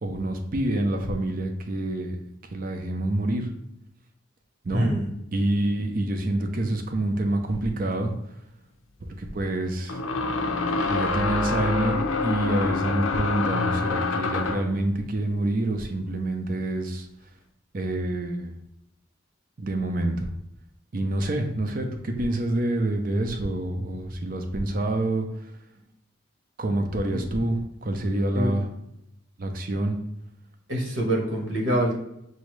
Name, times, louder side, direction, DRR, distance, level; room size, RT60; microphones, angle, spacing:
voice 1, 0.0-2.2 2.5-3.5 4.6-4.9 5.3-8.1 9.0-10.0 10.9-17.1 17.7-18.5 19.6-20.3 20.9-25.5 26.6-28.7 29.4-30.0, right 1 dB, 45° right, 5 dB, 0.6 m, -27 dB
voice 2, 4.7-5.1 28.3-28.5 30.7-32.0, right 1 dB, 70° right, -1 dB, 1.2 m, -25 dB
sound 1, 7.9-8.0 9.9-14.7, left 4 dB, 85° left, 0.5 m, -26 dB
6.2 x 2.7 x 3.1 m, 0.81 s
head